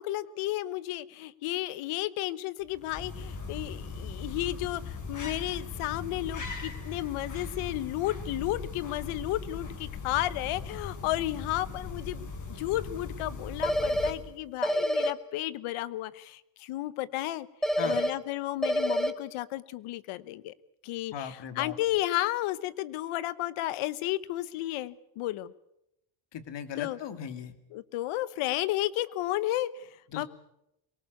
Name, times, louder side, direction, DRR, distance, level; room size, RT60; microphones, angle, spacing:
voice 1, 0.0-17.5 17.8-20.5 20.8-25.5 26.8-27.0 27.7-29.9 30.2-30.3, left 15 dB, 85° left, 17 dB, 1.1 m, -33 dB
sound 1, 2.6-14.5, left 4 dB, 35° left, 3.7 m, -39 dB
sound 2, 13.6-14.1 14.6-15.1 17.6-18.1 18.6-19.1, equal, ahead, 1.8 m, -27 dB
voice 2, 21.1-21.8 26.3-27.5 30.1-30.3, left 8 dB, 60° left, 10 dB, 2.6 m, -37 dB
23.5 x 19.0 x 8.4 m, 0.84 s
cardioid pair, 100°, 49 cm